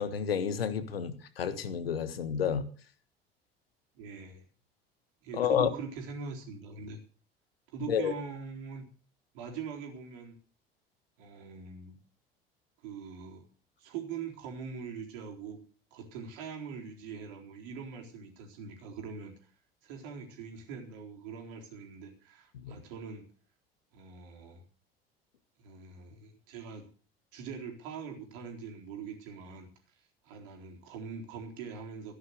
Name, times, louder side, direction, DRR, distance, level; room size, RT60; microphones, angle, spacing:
voice 1, 0.0-2.6 5.3-5.7 7.9-8.1 22.6-22.7, left 8 dB, 80° left, 1.4 m, -30 dB
voice 2, 3.9-4.4 5.2-7.0 7.7-8.8 9.3-10.3 11.2-12.0 12.8-13.4 13.8-15.6 15.9-19.5 19.8-23.3 23.9-24.6 25.6-26.9 27.3-29.7 30.2-32.1, right 6 dB, 65° right, 4.0 m, -42 dB
14.5 x 10.5 x 6.6 m
figure-of-eight pair, 60°, 29 cm